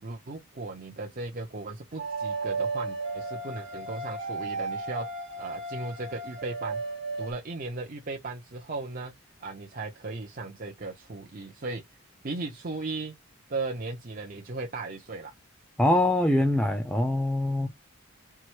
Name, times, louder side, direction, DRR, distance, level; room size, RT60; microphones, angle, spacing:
voice 1, 0.0-5.1 5.3-6.8 7.2-9.1 9.4-11.8 12.2-13.2 13.5-15.3, right 3 dB, 40° right, 0.6 m, -36 dB
sound 1, 2.0-7.3, right 3 dB, 55° right, 1.2 m, -34 dB
voice 2, 15.8-17.7, left 1 dB, 5° left, 0.5 m, -23 dB
4.6 x 2.0 x 4.5 m
head